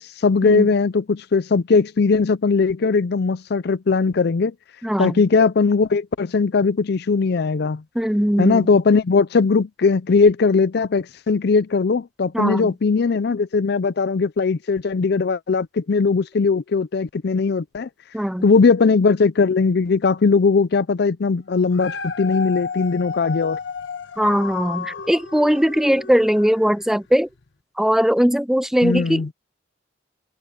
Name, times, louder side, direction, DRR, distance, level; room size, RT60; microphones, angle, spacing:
voice 1, 0.0-4.5 5.0-7.8 8.4-17.9 18.4-23.6 28.8-29.3, left 4 dB, 60° left, 0.5 m, -19 dB
voice 2, 4.8-5.2 8.0-8.7 12.3-12.7 18.1-18.4 24.2-27.3 27.8-29.3, equal, ahead, 0.4 m, -20 dB
Dog, 21.5-26.9 27.4-27.5, left 5 dB, 80° left, 1.2 m, -32 dB
head